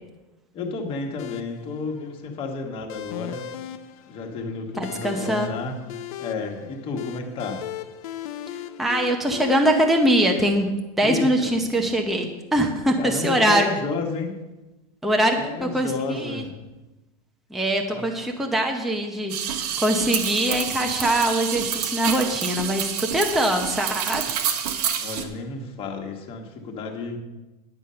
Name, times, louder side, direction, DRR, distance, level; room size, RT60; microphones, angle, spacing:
voice 1, 0.5-3.5 4.1-5.8 6.2-7.6 11.0-11.5 13.0-14.3 15.4-16.5 17.9-18.0 25.0-27.2, left 4 dB, 25° left, 2 dB, 1.5 m, -31 dB
sound 1, 1.2-9.5, left 11 dB, 65° left, 0.8 m, -38 dB
voice 2, 4.8-5.5 8.8-10.7 11.0-13.7 15.0-16.4 17.5-24.4, right 1 dB, ahead, 2 dB, 0.7 m, -23 dB
sound 2, 19.3-25.2, right 8 dB, 90° right, 1.4 m, -28 dB
10.5 x 8.0 x 5.6 m, 1.1 s
supercardioid pair, 165°, 20 cm